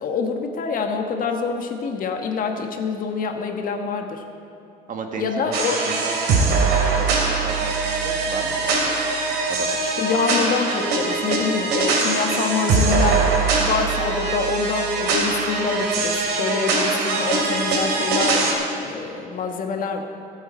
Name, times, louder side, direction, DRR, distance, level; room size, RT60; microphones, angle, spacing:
voice 1, 0.0-4.2 5.2-5.8 10.0-13.3 13.6-20.0, left 5 dB, 55° left, 4 dB, 1.5 m, -26 dB
voice 2, 4.9-6.2 6.5-9.0 9.5-9.8, right 5 dB, 50° right, 4 dB, 1.6 m, -34 dB
sound 1, 5.5-18.5, right 3 dB, 80° right, 2.8 m, -22 dB
22.5 x 8.1 x 4.4 m, 2.8 s
cardioid pair, 110°, 17 cm